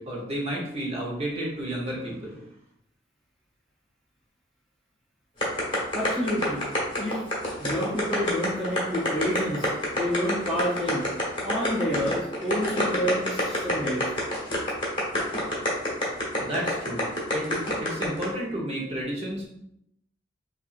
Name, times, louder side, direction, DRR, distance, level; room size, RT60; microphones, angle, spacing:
voice 1, 0.0-2.4 16.4-17.1 17.3-19.4, right 1 dB, 35° right, -2 dB, 1.0 m, -31 dB
sound 1, 5.4-18.3, left 1 dB, 30° left, 1.3 m, -27 dB
voice 2, 5.9-6.6 7.0-7.3 7.6-9.7 9.9-11.0 11.4-14.0, equal, ahead, -7 dB, 0.7 m, -28 dB
5.6 x 2.6 x 2.5 m, 0.75 s
head